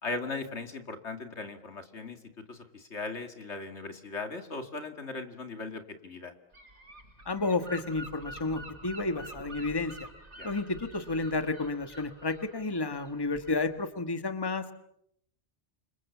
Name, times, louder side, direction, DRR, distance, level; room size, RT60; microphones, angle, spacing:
voice 1, 0.0-6.3 10.4-10.5, left 3 dB, 80° left, 7 dB, 2.6 m, -38 dB
Gull seagull / Wind, 6.5-13.8, right 1 dB, 90° right, 6.9 m, -47 dB
voice 2, 7.2-9.9 10.4-14.7, left 3 dB, 20° left, 9 dB, 1.5 m, -31 dB
29.5 x 26.5 x 7.2 m, 0.75 s
omnidirectional pair, 1.2 m